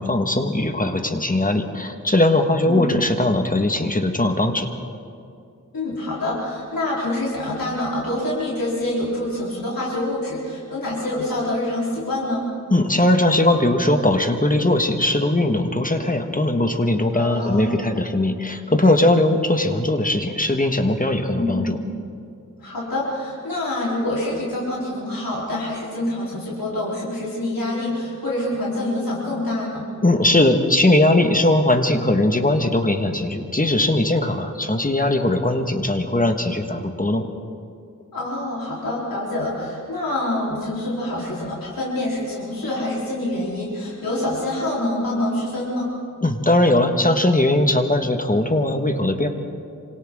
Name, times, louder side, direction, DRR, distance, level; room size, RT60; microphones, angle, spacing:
voice 1, 0.0-4.7 12.7-21.8 30.0-37.3 46.2-49.3, left 1 dB, 25° left, 5 dB, 1.6 m, -19 dB
voice 2, 5.7-12.5 17.1-17.8 21.3-21.9 22.6-29.9 38.1-45.9, left 1 dB, 85° left, -6 dB, 4.0 m, -26 dB
26.5 x 26.0 x 3.8 m, 2.5 s
wide cardioid pair, 70°, 33 cm